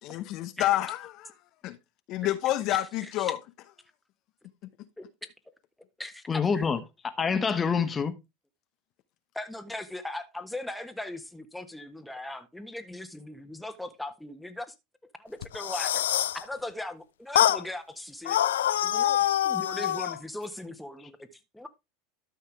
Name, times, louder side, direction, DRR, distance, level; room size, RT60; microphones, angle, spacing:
voice 1, 0.0-1.3 1.6-1.8 2.1-3.4, left 14 dB, 55° left, 0.8 m, -28 dB
voice 2, 2.7-3.3 5.0-5.1 6.0-6.7 9.3-14.7 15.2-16.0 16.3-18.4 18.8-21.7, left 1 dB, 5° left, 1.4 m, -39 dB
voice 3, 6.3-6.8 7.0-8.1, left 6 dB, 25° left, 1.5 m, -26 dB
sound 1, 15.4-16.4 17.4-17.6 18.3-20.2, left 12 dB, 90° left, 0.4 m, -25 dB
12.5 x 5.6 x 3.4 m
hypercardioid pair, 105°, 0 cm